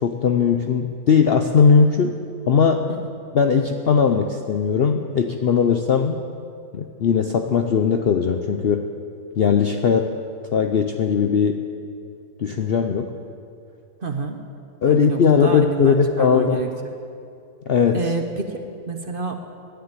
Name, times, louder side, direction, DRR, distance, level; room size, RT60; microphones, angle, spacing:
voice 1, 0.0-2.1 2.5-2.9 3.3-6.2 6.7-8.9 9.4-10.1 10.5-11.7 12.4-13.1 14.8-16.6 17.7-18.1, left 6 dB, 60° left, 5 dB, 0.6 m, -19 dB
voice 2, 14.0-14.4 14.9-16.7 17.9-19.4, right 4 dB, 40° right, 5 dB, 0.9 m, -28 dB
11.5 x 10.5 x 9.0 m, 2.5 s
omnidirectional pair, 1.6 m